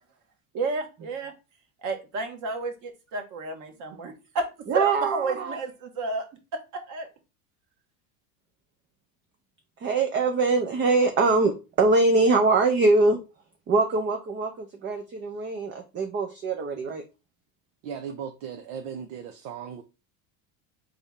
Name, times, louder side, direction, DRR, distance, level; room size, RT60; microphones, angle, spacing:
voice 1, 0.5-1.3 1.8-6.2 6.5-7.1, right 3 dB, 45° right, 1.5 m, -31 dB
voice 2, 4.7-5.6 9.8-13.2 13.7-17.0, right 3 dB, 30° right, 0.6 m, -23 dB
voice 3, 17.8-19.8, right 7 dB, 65° right, 0.8 m, -37 dB
4.1 x 3.4 x 3.6 m
supercardioid pair, 125°, 41 cm